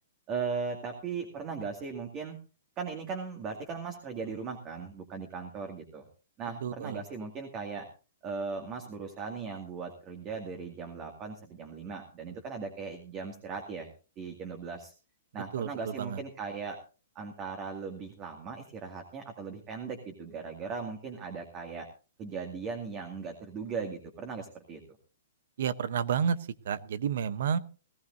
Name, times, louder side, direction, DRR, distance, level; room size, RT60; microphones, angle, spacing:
voice 1, 0.3-2.4 2.8-6.0 6.4-7.9 8.2-13.9 14.2-14.9 15.3-16.8 17.2-21.9 22.2-24.8, right 5 dB, 30° right, 4 dB, 2.1 m, -38 dB
voice 2, 6.6-7.0 15.5-16.2 25.6-26.4 26.6-27.6, right 7 dB, 65° right, 15 dB, 0.9 m, -30 dB
18.5 x 15.0 x 2.6 m, 0.35 s
hypercardioid pair, 135°, 0 cm